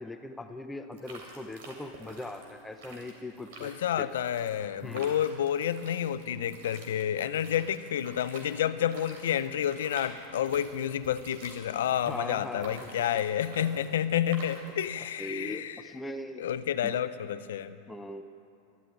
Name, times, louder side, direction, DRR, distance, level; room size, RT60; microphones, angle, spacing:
voice 1, 0.0-4.2 4.8-5.1 12.1-13.1 15.2-16.4 16.8-17.0 17.9-18.2, left 1 dB, 5° left, 7 dB, 0.6 m, -40 dB
sound 1, 0.9-14.9, right 3 dB, 75° right, 3.3 m, -49 dB
voice 2, 3.6-15.8 16.4-17.8, left 10 dB, 85° left, 13 dB, 0.6 m, -30 dB
13.0 x 9.1 x 8.8 m, 2.7 s
supercardioid pair, 125°, 0 cm